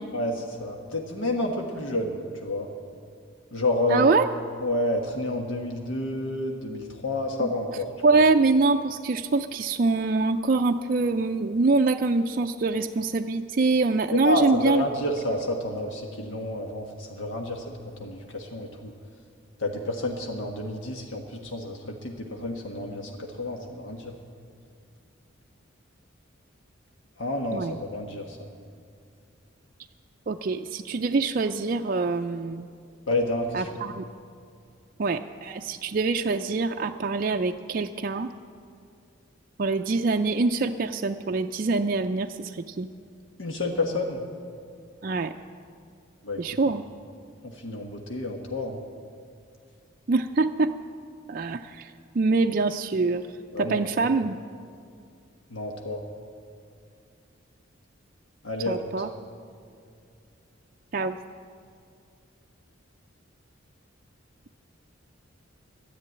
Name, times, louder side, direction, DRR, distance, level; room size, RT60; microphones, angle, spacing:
voice 1, 0.1-2.7 3.5-4.1 4.6-8.2 14.2-17.7 18.0-18.9 19.6-24.1 27.2-28.4 33.1-33.7 43.4-44.2 46.2-46.4 47.4-48.8 53.5-53.8 55.5-56.0 58.4-59.0, left 1 dB, 75° left, 2 dB, 1.4 m, -30 dB
voice 2, 3.9-4.3 7.4-7.5 8.0-14.9 27.5-27.8 30.3-32.7 33.5-34.1 35.0-38.3 39.6-42.9 45.0-45.3 46.4-46.8 50.1-50.7 51.3-53.2 53.6-54.4 58.7-59.1 60.9-61.2, right 3 dB, 45° right, 5 dB, 0.4 m, -24 dB
12.0 x 10.5 x 9.4 m, 2.3 s
head